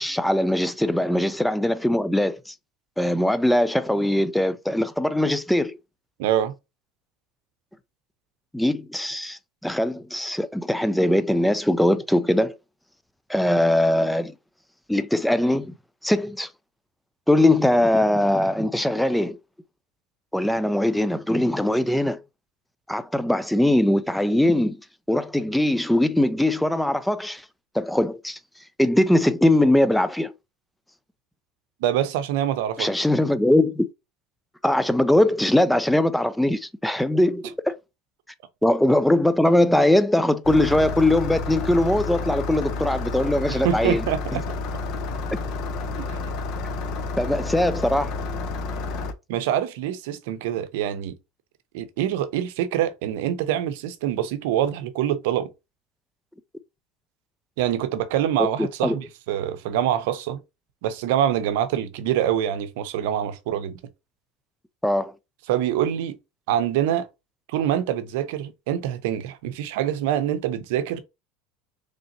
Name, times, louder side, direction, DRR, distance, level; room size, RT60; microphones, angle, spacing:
voice 1, 0.0-2.5 3.0-5.8 8.5-12.6 13.3-14.3 14.9-15.7 16.0-16.5 17.3-19.4 20.3-22.2 22.9-24.8 25.1-27.4 27.7-28.4 28.8-30.3 32.8-33.9 34.6-37.7 38.6-44.1 47.2-48.1 58.4-59.0 64.8-65.1, left 1 dB, 5° left, 0.4 m, -21 dB
voice 2, 6.2-6.5 31.8-32.9 43.5-44.4 46.0-46.2 49.3-51.2 51.7-55.5 57.6-60.4 60.8-63.8 65.5-66.2 66.5-67.1 67.5-71.0, right 11 dB, 80° right, 0.6 m, -25 dB
Engine starting, 40.4-49.1, left 3 dB, 55° left, 0.7 m, -30 dB
3.9 x 3.3 x 2.7 m
supercardioid pair, 125°, 0 cm